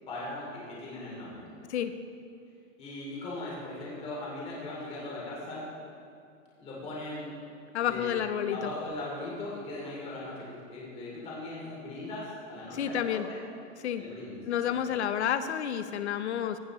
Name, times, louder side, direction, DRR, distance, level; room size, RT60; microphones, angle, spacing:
voice 1, 0.1-1.5 2.8-5.6 6.6-7.3 7.8-8.2 8.5-13.4 14.0-14.4 14.8-14.9, left 2 dB, 15° left, -6 dB, 2.7 m, -39 dB
voice 2, 7.7-8.7 12.7-13.3 13.8-14.0 14.5-16.6, left 9 dB, 60° left, 11 dB, 0.8 m, -30 dB
16.5 x 11.0 x 3.1 m, 2.5 s
hypercardioid pair, 170°, 39 cm